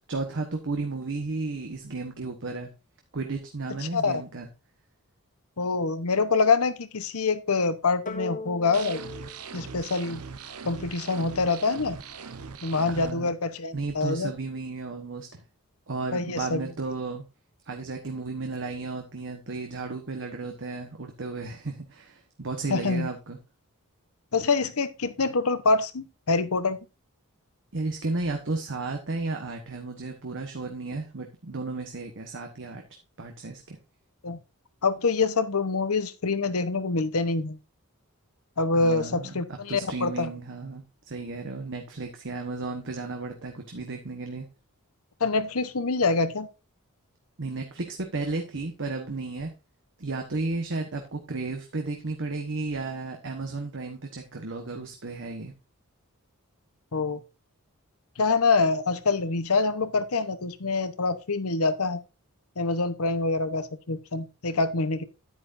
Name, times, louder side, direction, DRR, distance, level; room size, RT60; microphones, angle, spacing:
voice 1, 0.1-2.7 3.1-4.5 12.9-13.3 13.7-15.4 15.9-17.2 17.7-23.4 27.7-32.8 33.2-33.8 38.7-44.5 47.4-49.5 50.0-55.5, right 3 dB, 60° right, 4 dB, 1.3 m, -33 dB
voice 2, 3.8-4.2 5.6-9.0 9.5-10.2 10.6-12.0 12.6-14.3 16.1-16.6 22.7-23.1 24.3-26.8 34.2-34.4 34.8-37.6 38.6-40.3 45.2-46.5 56.9-57.2 58.2-62.0 62.6-65.0, left 4 dB, 70° left, 12 dB, 1.0 m, -25 dB
sound 1, 8.1-10.6, left 3 dB, 35° left, 1.2 m, -40 dB
sound 2, 8.7-13.1, right 5 dB, 75° right, 1.0 m, -40 dB
10.5 x 9.3 x 2.6 m, 0.29 s
head